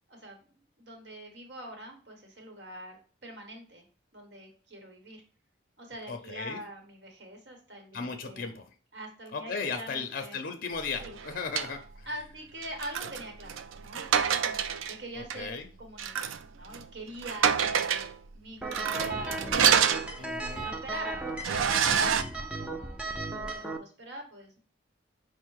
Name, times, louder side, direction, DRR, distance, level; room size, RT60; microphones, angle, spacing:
voice 1, 0.1-0.4 0.8-3.9 4.1-5.2 5.8-8.5 8.9-10.4 11.0-11.2 12.1-18.1 18.3-19.6 20.1-24.6, right 1 dB, 60° right, 2 dB, 1.1 m, -44 dB
voice 2, 6.1-6.6 7.9-8.6 9.3-12.1 15.2-15.7 20.1-20.7, left 5 dB, 45° left, 6 dB, 0.5 m, -36 dB
sound 1, 11.0-11.7 12.6-15.0 15.3-15.4 16.0-16.4 16.7-16.9 17.2-18.1 18.7-20.5 20.9-21.0 21.4-22.2, right 8 dB, 80° right, 0.4 m, -27 dB
sound 2, 18.6-23.8, right 2 dB, 5° right, 0.4 m, -36 dB
5.4 x 2.1 x 4.6 m, 0.39 s
head